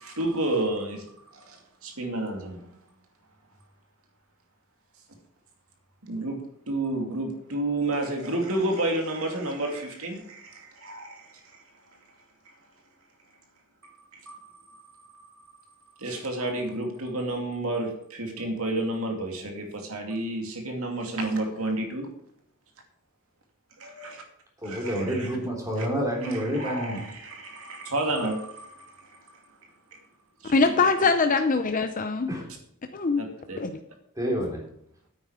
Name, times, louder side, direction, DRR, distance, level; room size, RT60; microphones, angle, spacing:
voice 1, 0.0-2.8 6.0-6.4 6.7-11.6 12.5-12.6 13.8-15.6 16.0-22.1 23.8-24.2 24.6-25.3 25.8-25.9 26.2-29.4 29.9-30.0 30.4-31.1 33.2-33.6, right 2 dB, 70° right, 3 dB, 2.5 m, -31 dB
voice 2, 24.6-27.0 32.3-32.5 34.1-34.6, equal, 15° right, -1 dB, 3.4 m, -28 dB
voice 3, 30.5-32.4 32.9-33.2 33.6-33.7, left 4 dB, 40° left, 7 dB, 0.6 m, -23 dB
9.2 x 9.2 x 4.9 m, 0.72 s
head